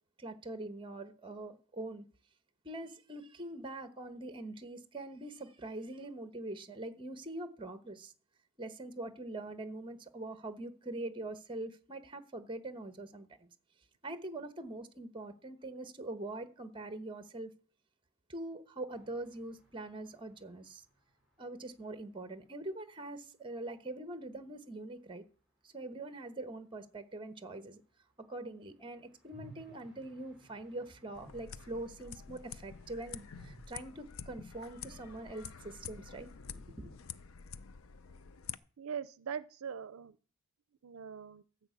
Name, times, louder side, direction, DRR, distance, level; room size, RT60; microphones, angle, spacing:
voice 1, 0.2-2.0 2.6-8.1 8.6-13.5 14.0-17.5 18.3-20.8 21.4-25.2 25.6-27.8 28.3-36.9, right 2 dB, 25° right, 1.1 m, -43 dB
sound 1, 18.9-22.7 23.0-23.1 23.2-23.3 28.4-33.6, right 1 dB, 5° right, 4.7 m, -60 dB
sound 2, 31.1-38.6, left 7 dB, 70° left, 0.6 m, -48 dB
voice 2, 38.8-40.2 40.8-41.4, right 7 dB, 80° right, 0.5 m, -41 dB
13.5 x 5.7 x 8.1 m
head